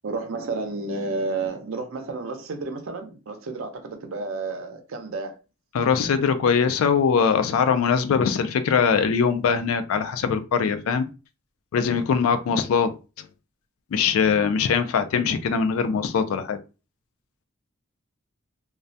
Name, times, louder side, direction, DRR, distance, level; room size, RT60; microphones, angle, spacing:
voice 1, 0.0-5.4, right 3 dB, 70° right, 0.5 m, -31 dB
voice 2, 5.7-11.0 11.7-12.9 13.2-13.3 13.9-16.6, left 6 dB, 85° left, 0.3 m, -22 dB
2.3 x 2.1 x 2.6 m
head